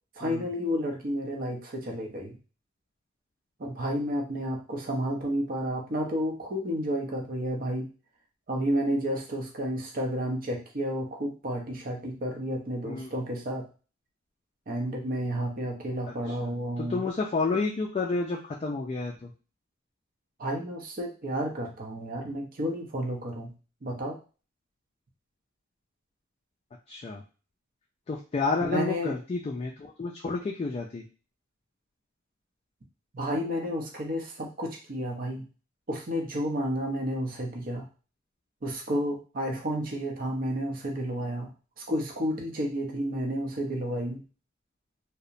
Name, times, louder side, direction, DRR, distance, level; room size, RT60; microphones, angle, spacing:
voice 1, 0.2-2.4 3.6-7.9 8.5-13.7 14.7-17.0 20.4-23.5 23.8-24.2 28.6-29.1 33.1-35.5 35.9-37.9 38.6-41.5 41.8-44.2, equal, 45° right, 1 dB, 0.6 m, -31 dB
voice 2, 12.8-13.1 16.3-16.5 16.8-19.3 26.9-27.2 28.1-31.0, left 3 dB, 30° left, -2 dB, 0.3 m, -30 dB
2.8 x 2.0 x 2.5 m, 0.35 s
head